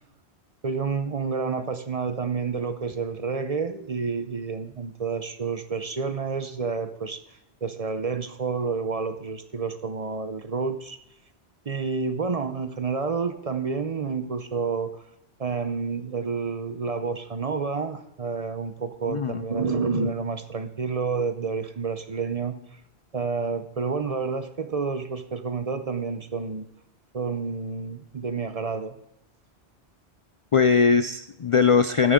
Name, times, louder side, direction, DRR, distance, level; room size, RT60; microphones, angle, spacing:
voice 1, 0.6-7.2 7.6-11.0 11.7-15.0 15.4-22.6 23.1-26.7 27.1-29.0, right 4 dB, 40° right, 10 dB, 0.7 m, -29 dB
voice 2, 19.1-19.4 30.5-32.1, left 5 dB, 50° left, 11 dB, 0.4 m, -20 dB
13.5 x 10.0 x 3.7 m, 0.86 s
omnidirectional pair, 1.1 m